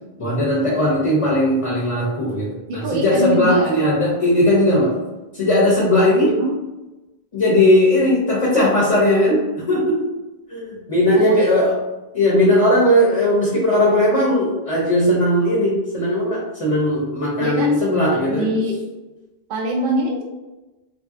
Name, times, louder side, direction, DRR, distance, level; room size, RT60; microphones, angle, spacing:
voice 1, 0.2-4.9 5.3-6.4 7.3-10.1 10.5-11.7 12.1-18.5, left 1 dB, 40° left, -5 dB, 0.7 m, -18 dB
voice 2, 2.7-3.7 6.4-6.6 11.1-11.5 17.4-17.7 18.2-18.8 19.5-20.2, right 1 dB, 60° right, -1 dB, 0.6 m, -23 dB
3.2 x 2.6 x 2.4 m, 1.1 s
omnidirectional pair, 1.0 m